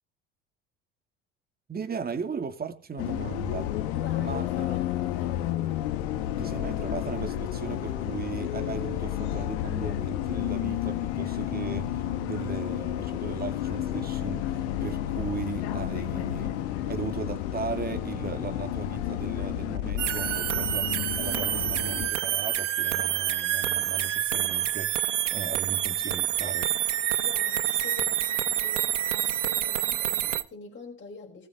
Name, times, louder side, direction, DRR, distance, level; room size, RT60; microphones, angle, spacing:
voice 1, 1.7-3.7 4.2-4.7 5.0-5.1 6.4-16.5 16.9-26.7, right 6 dB, 25° right, 2.5 m, -37 dB
Bus, 3.0-22.1, left 12 dB, 65° left, 1.7 m, -31 dB
voice 2, 3.9-5.4 27.2-31.5, left 5 dB, 30° left, 5.1 m, -45 dB
sound 1, 20.0-30.4, right 11 dB, 85° right, 0.9 m, -27 dB
19.5 x 8.2 x 3.8 m
hypercardioid pair, 65°, 36 cm